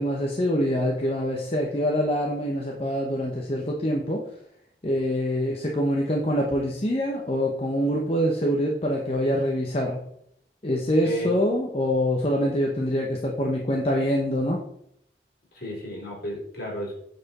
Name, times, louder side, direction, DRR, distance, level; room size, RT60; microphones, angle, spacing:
voice 1, 0.0-4.2 4.8-10.0 10.6-14.6, equal, 35° left, 0 dB, 0.8 m, -25 dB
voice 2, 15.5-16.9, equal, 55° left, -2 dB, 3.1 m, -32 dB
8.3 x 4.4 x 4.1 m, 0.72 s
head